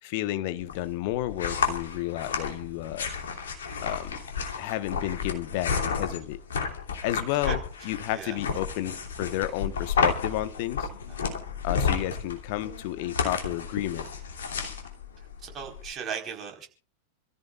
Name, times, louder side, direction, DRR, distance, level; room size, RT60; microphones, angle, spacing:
voice 1, 0.0-3.1 3.8-4.2 4.6-6.4 7.0-10.9 11.6-14.1, left 14 dB, 50° left, 1.2 m, -31 dB
sound 1, 0.6-15.9, left 6 dB, 65° left, 2.9 m, -31 dB
voice 2, 15.4-16.7, right 7 dB, 25° right, 4.5 m, -36 dB
28.5 x 14.5 x 2.5 m
figure-of-eight pair, 90°, 0 cm